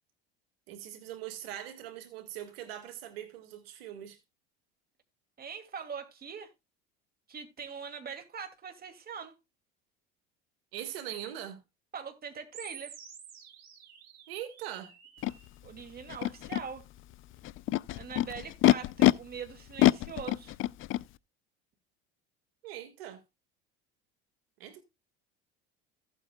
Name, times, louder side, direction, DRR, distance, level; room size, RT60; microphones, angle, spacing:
voice 1, 0.7-4.2 10.7-11.6 14.3-14.9 16.2-16.3 22.6-23.2 24.6-24.8, right 11 dB, 90° right, 1.8 m, -41 dB
voice 2, 5.4-6.5 7.3-9.4 11.9-13.0 15.6-16.9 17.9-20.6, right 6 dB, 30° right, 2.3 m, -42 dB
sound 1, 12.5-15.5, right 8 dB, 60° right, 3.7 m, -50 dB
Animal, 15.2-15.3 16.1-16.6 17.4-19.1 19.8-21.0, left 16 dB, 45° left, 0.4 m, -25 dB
15.0 x 8.3 x 2.3 m
supercardioid pair, 95°, 29 cm